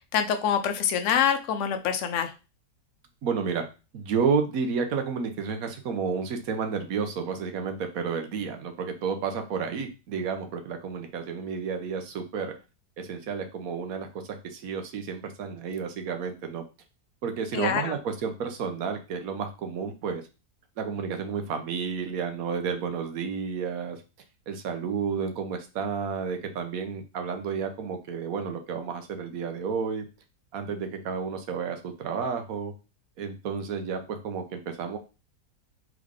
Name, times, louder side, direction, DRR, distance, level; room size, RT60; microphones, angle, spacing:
voice 1, 0.1-2.3 17.5-18.0, left 8 dB, 65° left, 8 dB, 0.7 m, -25 dB
voice 2, 3.2-3.7 3.9-12.5 13.0-16.6 17.2-20.2 20.8-24.0 24.5-30.0 30.5-32.7 33.2-35.0, right 6 dB, 65° right, 6 dB, 1.1 m, -31 dB
3.6 x 3.4 x 3.5 m, 0.30 s
omnidirectional pair, 1.8 m